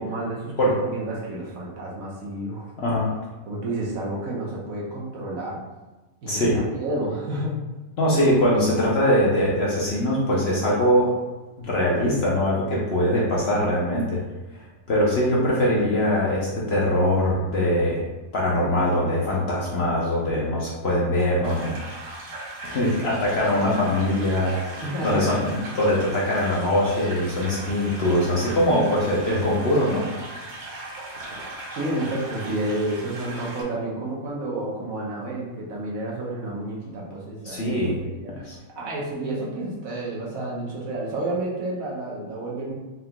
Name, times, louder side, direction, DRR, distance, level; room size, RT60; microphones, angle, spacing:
voice 1, 0.0-2.6 3.5-5.6 6.2-7.6 24.8-25.4 31.7-38.5 38.8-42.7, right 1 dB, 65° right, -4 dB, 1.3 m, -30 dB
voice 2, 2.8-3.2 6.3-6.6 8.0-11.1 11.6-14.2 14.5-14.6 14.9-18.0 18.3-21.8 22.6-30.1 37.4-38.0 38.3-38.6, left 1 dB, 55° left, -4 dB, 0.8 m, -22 dB
sound 1, 21.4-33.6, right 2 dB, 50° right, 0.6 m, -38 dB
4.3 x 3.7 x 2.2 m, 1.1 s
omnidirectional pair, 1.6 m